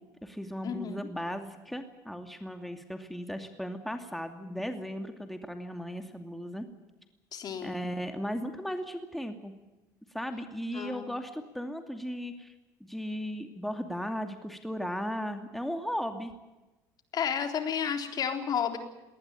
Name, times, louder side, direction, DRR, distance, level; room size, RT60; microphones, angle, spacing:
voice 1, 0.0-6.7 7.6-9.5 10.1-12.5 12.8-16.3, equal, ahead, 6 dB, 2.6 m, -36 dB
voice 2, 7.3-7.7 10.8-11.1 17.1-18.8, left 8 dB, 50° left, 6 dB, 3.8 m, -31 dB
20.0 x 19.0 x 9.1 m, 1.1 s
supercardioid pair, 85°, 9 cm